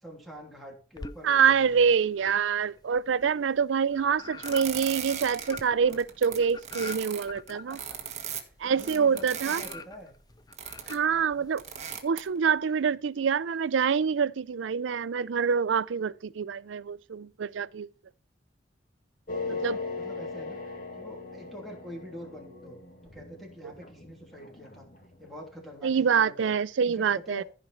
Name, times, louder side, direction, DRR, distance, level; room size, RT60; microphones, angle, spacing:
voice 1, 0.0-1.9 7.5-10.1 11.1-11.5 19.4-22.8 23.0-24.9 25.2-26.5 26.8-27.4, equal, ahead, 3.1 m, -46 dB
sound 1, 1.0-1.8 2.1-12.0, left 3 dB, 20° left, 0.5 m, -46 dB
voice 2, 1.2-7.8 8.6-9.6 10.9-11.6 12.0-17.9 19.5-19.8 25.8-27.4, right 6 dB, 85° right, 0.4 m, -26 dB
sound 2, 4.4-5.6 5.9-9.7 10.5-11.1 11.6-12.4, right 8 dB, 35° right, 1.4 m, -37 dB
sound 3, 19.3-25.5, left 3 dB, 45° left, 2.1 m, -39 dB
15.0 x 5.1 x 4.5 m
head